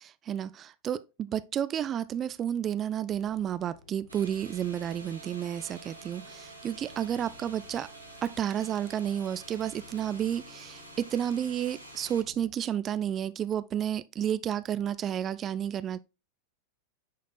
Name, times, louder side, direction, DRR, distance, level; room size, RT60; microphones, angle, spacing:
voice 1, 0.3-7.9 8.2-16.0, right 9 dB, 25° right, 0.3 m, -31 dB
sound 1, 3.1-12.5, left 4 dB, 65° left, 1.3 m, -56 dB
sound 2, 4.1-12.2, right 2 dB, 85° right, 1.5 m, -48 dB
10.0 x 4.1 x 2.3 m
figure-of-eight pair, 90°, 0 cm